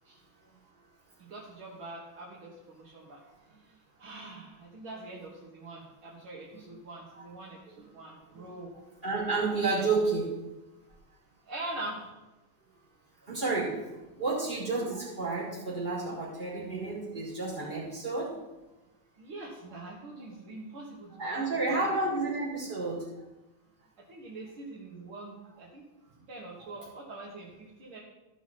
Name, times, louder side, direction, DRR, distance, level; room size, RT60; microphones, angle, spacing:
voice 1, 1.2-3.2 3.6-3.7 4.0-8.7 11.4-12.0 19.1-22.1 24.1-25.9 26.3-28.0, right 2 dB, 75° right, -6 dB, 2.5 m, -43 dB
voice 2, 9.0-10.3 13.2-13.8 14.2-18.3 21.2-23.1, right 3 dB, 20° right, -9 dB, 4.3 m, -30 dB
15.5 x 6.3 x 4.4 m, 1.0 s
omnidirectional pair, 2.3 m